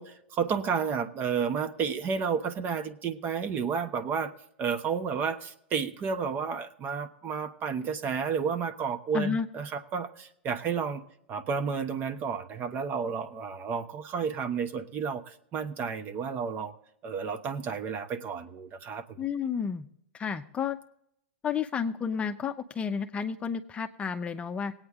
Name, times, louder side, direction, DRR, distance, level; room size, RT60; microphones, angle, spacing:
voice 1, 0.0-4.3 4.6-11.0 11.3-16.7 17.0-19.2, right 6 dB, 35° right, 9 dB, 1.1 m, -31 dB
voice 2, 9.1-9.5 19.2-19.9 20.1-20.8 21.4-24.7, left 6 dB, 20° left, 7 dB, 0.7 m, -31 dB
19.5 x 8.8 x 3.6 m, 0.74 s
hypercardioid pair, 110°, 6 cm